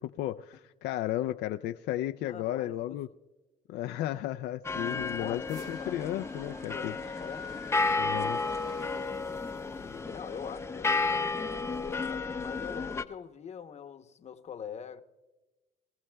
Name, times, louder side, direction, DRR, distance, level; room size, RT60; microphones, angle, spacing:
voice 1, 0.0-3.1 3.7-6.9 8.0-8.4, left 13 dB, 75° left, 0.4 m, -34 dB
voice 2, 2.3-2.9 5.2-5.9 6.7-7.6 8.1-8.9 9.6-15.0, left 8 dB, 40° left, 0.9 m, -44 dB
sound 1, 4.6-13.0, left 3 dB, 15° left, 0.6 m, -32 dB
sound 2, 5.5-10.5, right 5 dB, 70° right, 2.2 m, -55 dB
24.0 x 15.0 x 2.3 m
cardioid pair, 110°, 17 cm